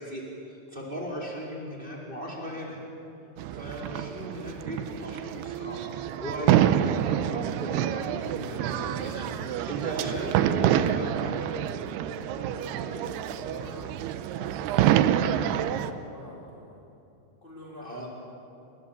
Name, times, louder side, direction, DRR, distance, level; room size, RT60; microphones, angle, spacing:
voice 1, 0.0-2.8 3.5-11.8 17.8-18.1, equal, 10° right, -3 dB, 4.0 m, -37 dB
sound 1, 3.4-15.9, right 11 dB, 80° right, 2.3 m, -27 dB
voice 2, 12.2-16.8 17.4-18.3, left 1 dB, 15° left, -4 dB, 2.6 m, -45 dB
30.0 x 21.5 x 7.3 m, 2.8 s
omnidirectional pair, 5.6 m